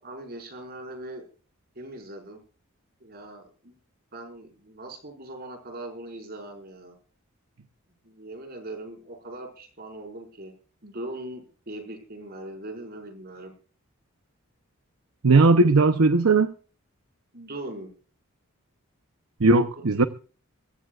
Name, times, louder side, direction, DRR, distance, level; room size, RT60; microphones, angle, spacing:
voice 1, 0.0-1.2 1.8-2.4 3.0-3.7 4.1-7.0 8.0-10.5 10.8-13.5 17.3-17.9, right 1 dB, 45° right, 5.3 m, -40 dB
voice 2, 15.2-16.5 19.4-20.1, right 3 dB, 85° right, 0.8 m, -18 dB
23.0 x 16.0 x 2.5 m
head